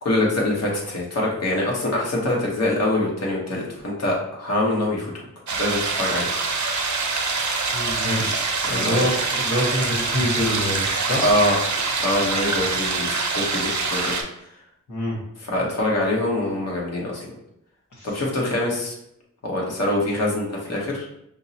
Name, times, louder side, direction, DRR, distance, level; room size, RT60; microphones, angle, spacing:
voice 1, 0.0-5.1 5.6-6.3 8.7-9.0 11.2-11.6 12.0-14.1 15.4-17.3 18.0-18.9 19.4-21.0, left 1 dB, 55° left, -3 dB, 1.0 m, -24 dB
sound 1, 5.5-14.2, right 4 dB, 70° right, 0.6 m, -25 dB
voice 2, 7.7-11.2 14.9-15.2 18.0-18.1, equal, 85° left, -4 dB, 1.2 m, -26 dB
5.4 x 2.0 x 2.7 m, 0.77 s
wide cardioid pair, 80°, 30 cm